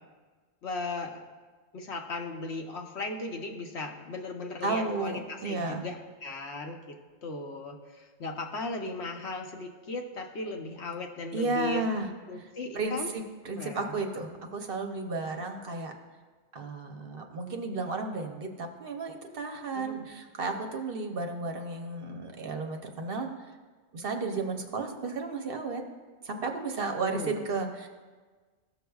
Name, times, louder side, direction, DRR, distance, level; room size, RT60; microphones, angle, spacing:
voice 1, 0.6-1.2 1.7-6.9 7.2-11.8 12.3-13.1 13.6-14.0 19.7-20.0 27.1-27.4, left 3 dB, 70° left, 2 dB, 1.1 m, -37 dB
voice 2, 4.6-5.8 11.3-12.1 12.4-15.9 16.5-23.3 23.9-25.8 26.2-27.9, right 3 dB, 55° right, 4 dB, 0.9 m, -33 dB
15.5 x 6.5 x 2.3 m, 1.4 s
omnidirectional pair, 1.2 m